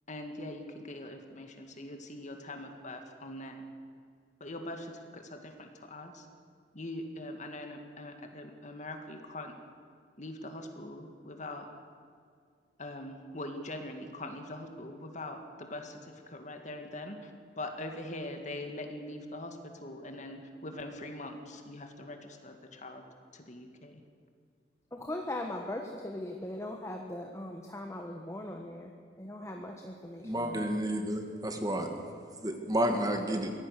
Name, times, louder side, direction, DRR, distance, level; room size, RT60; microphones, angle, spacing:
voice 1, 0.1-3.6 4.4-6.3 6.7-9.5 10.2-11.7 12.8-17.3 17.6-23.0 23.3-24.0, left 1 dB, 45° left, 5 dB, 2.1 m, -42 dB
voice 2, 24.9-28.9 29.2-30.8, left 1 dB, 15° left, 2 dB, 1.3 m, -39 dB
voice 3, 30.2-31.9 32.4-33.5, right 1 dB, 20° right, 4 dB, 2.0 m, -30 dB
23.5 x 17.0 x 6.7 m, 2.2 s
head